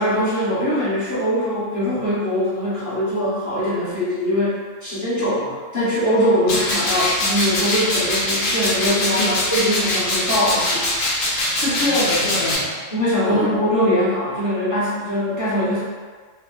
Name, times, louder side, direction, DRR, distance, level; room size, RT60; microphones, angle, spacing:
voice 1, 0.0-10.8 12.9-15.8, equal, 15° left, -12 dB, 0.9 m, -22 dB
voice 2, 6.1-6.5 8.9-9.4 11.6-12.8 13.2-13.5, left 1 dB, 65° left, -5 dB, 0.9 m, -24 dB
sound 1, 6.5-12.6, left 1 dB, 90° left, 1.0 m, -22 dB
2.4 x 2.2 x 2.4 m, 1.5 s
omnidirectional pair, 1.3 m